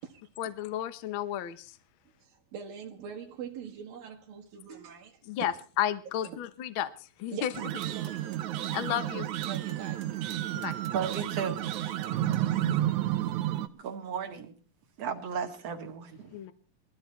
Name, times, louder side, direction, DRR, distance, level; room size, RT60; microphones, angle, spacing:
voice 1, 0.4-1.8 5.3-7.5 8.7-9.3 10.5-10.7 16.3-16.5, left 11 dB, 75° left, 1.1 m, -33 dB
voice 2, 2.2-5.2 6.2-6.4 7.3-8.5 9.4-10.1 11.4-11.5 12.0-12.9, right 8 dB, 85° right, 3.2 m, -44 dB
sound 1, 7.5-13.7, right 13 dB, 70° right, 2.0 m, -31 dB
voice 3, 10.9-11.6 13.0-13.2 13.7-14.5 15.0-16.4, right 7 dB, 50° right, 2.7 m, -35 dB
21.0 x 13.5 x 4.3 m
omnidirectional pair, 4.0 m